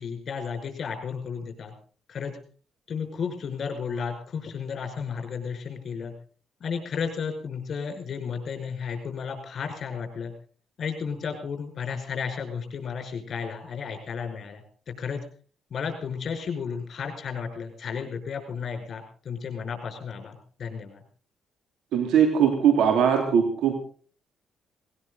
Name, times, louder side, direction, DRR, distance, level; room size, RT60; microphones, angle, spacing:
voice 1, 0.0-1.7 2.1-2.3 2.9-6.1 6.6-10.3 10.8-15.2 15.7-21.0, left 6 dB, 50° left, 5 dB, 5.4 m, -33 dB
voice 2, 21.9-23.7, right 8 dB, 85° right, 5 dB, 3.2 m, -20 dB
19.0 x 18.5 x 4.0 m, 0.40 s
cardioid pair, 90°, 0 cm